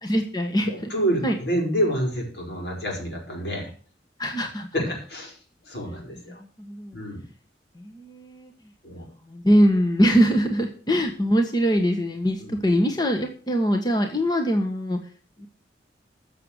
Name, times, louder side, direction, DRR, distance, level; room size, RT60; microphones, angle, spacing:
voice 1, 0.0-0.9 1.2-1.3 4.2-4.7 6.6-7.0 7.8-8.5 9.3-15.0 15.4-15.5, equal, 25° left, 4 dB, 1.4 m, -22 dB
voice 2, 0.7-3.7 4.7-5.4 5.7-6.4 6.9-7.2 8.8-9.1 12.4-12.5, equal, 75° left, 1 dB, 5.3 m, -28 dB
15.0 x 6.9 x 6.5 m, 0.42 s
head